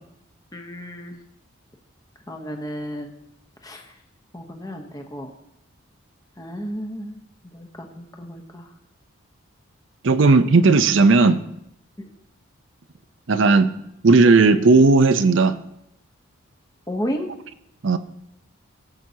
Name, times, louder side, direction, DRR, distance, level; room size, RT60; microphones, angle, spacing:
voice 1, 0.5-1.2 2.3-3.1 3.6-3.9 4.3-5.3 6.4-7.2 7.5-8.7 12.0-12.1 16.9-17.3, equal, 15° left, 3 dB, 0.9 m, -32 dB
voice 2, 10.0-11.4 13.3-13.7 14.0-15.5 17.8-18.0, right 3 dB, 60° right, 12 dB, 0.5 m, -15 dB
16.5 x 7.5 x 2.8 m, 0.80 s
head